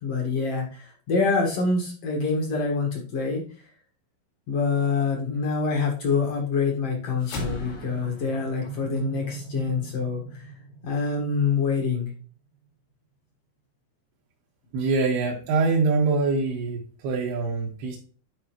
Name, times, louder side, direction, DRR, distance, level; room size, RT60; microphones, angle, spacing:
voice 1, 0.0-3.4 4.5-10.5 10.8-12.1, left 4 dB, 50° left, 0 dB, 1.9 m, -26 dB
sound 1, 7.2-11.8, right 1 dB, 80° left, 4.0 m, -37 dB
voice 2, 14.7-18.0, right 4 dB, 75° right, -4 dB, 3.3 m, -24 dB
9.9 x 4.7 x 3.1 m, 0.40 s
omnidirectional pair, 4.8 m